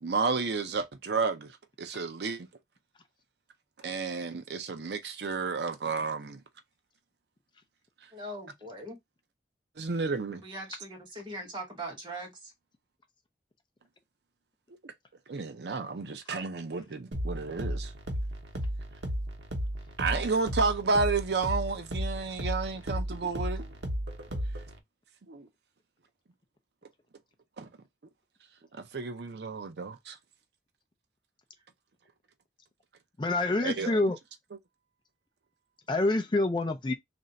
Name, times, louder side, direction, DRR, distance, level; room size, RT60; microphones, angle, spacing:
voice 1, 0.0-2.5 3.8-6.4 9.8-10.4 14.8-14.9 15.3-17.9 20.0-23.6 25.3-25.5 27.6-27.7 28.7-30.2 33.6-34.1, right 4 dB, 75° right, 0.5 m, -31 dB
voice 2, 8.1-9.0 10.3-12.5, right 1 dB, 25° right, 1.3 m, -41 dB
sound 1, 17.1-24.8, equal, 90° right, 0.9 m, -34 dB
voice 3, 33.2-34.2 35.9-36.9, left 2 dB, 25° left, 0.4 m, -26 dB
3.2 x 2.6 x 3.9 m
head